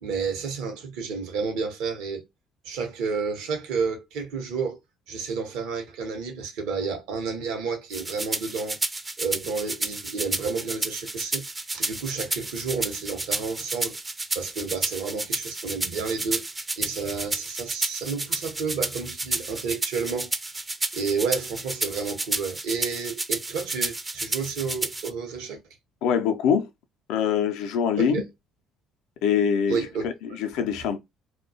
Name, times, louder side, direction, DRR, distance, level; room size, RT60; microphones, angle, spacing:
voice 1, 0.0-2.2 2.6-4.8 5.1-8.8 9.2-11.5 11.7-14.0 14.3-16.5 16.8-20.3 20.9-25.6 28.0-28.2 29.7-30.1, right 5 dB, 70° right, 0.7 m, -30 dB
sound 1, 7.9-25.1, right 2 dB, 25° right, 0.4 m, -31 dB
voice 2, 26.0-26.7 27.1-28.2 29.2-31.0, left 7 dB, 70° left, 0.4 m, -24 dB
2.3 x 2.1 x 2.5 m
hypercardioid pair, 55°, 0 cm